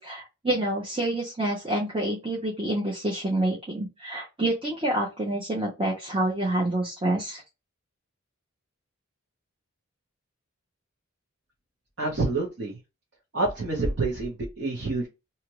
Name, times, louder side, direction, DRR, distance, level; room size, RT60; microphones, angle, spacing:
voice 1, 0.0-7.4, right 1 dB, 25° right, -4 dB, 0.7 m, -27 dB
voice 2, 12.0-12.8 13.3-15.1, right 3 dB, 55° right, -3 dB, 1.0 m, -27 dB
2.9 x 2.4 x 3.0 m, 0.25 s
head